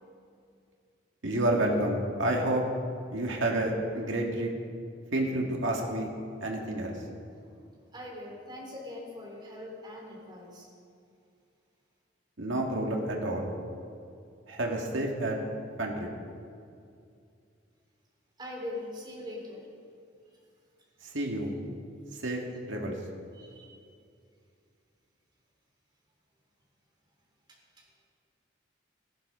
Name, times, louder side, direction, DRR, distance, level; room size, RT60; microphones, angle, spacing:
voice 1, 1.2-2.6 3.1-4.5 5.1-6.1 6.4-6.9 12.4-13.5 14.5-15.4 15.8-16.1 21.0-21.5 22.2-22.4 22.7-23.0, right 1 dB, 90° right, 0 dB, 2.0 m, -29 dB
voice 2, 7.9-10.7 18.4-19.6 23.3-23.7, left 1 dB, 25° right, -1 dB, 3.1 m, -41 dB
15.5 x 11.5 x 5.1 m, 2.4 s
head